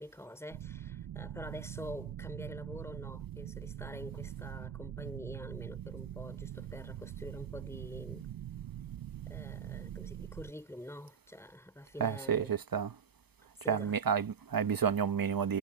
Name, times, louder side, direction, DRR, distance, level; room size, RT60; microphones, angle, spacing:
voice 1, 0.0-8.3 9.3-12.5 13.6-13.9, left 1 dB, 5° left, 4.4 m, -46 dB
sound 1, 0.5-10.5, right 11 dB, 85° right, 0.6 m, -43 dB
voice 2, 12.0-12.9 13.7-15.6, right 7 dB, 60° right, 1.1 m, -30 dB
cardioid pair, 55°, 39 cm